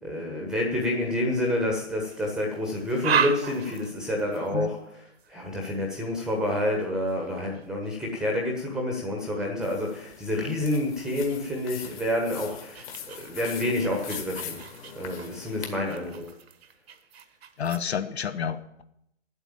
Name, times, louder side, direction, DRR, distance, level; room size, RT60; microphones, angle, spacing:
voice 1, 0.0-4.8 5.3-12.8 13.2-14.6 14.9-16.2, left 1 dB, ahead, 1 dB, 1.1 m, -28 dB
sound 1, 1.1-1.6 2.1-8.6 9.4-9.6 10.2-17.8, right 7 dB, 55° right, 1.1 m, -36 dB
sound 2, 9.6-15.7, left 8 dB, 30° left, 1.7 m, -42 dB
voice 2, 17.6-18.8, left 7 dB, 60° left, 11 dB, 1.1 m, -30 dB
9.6 x 8.1 x 8.7 m, 0.77 s
hypercardioid pair, 145°, 36 cm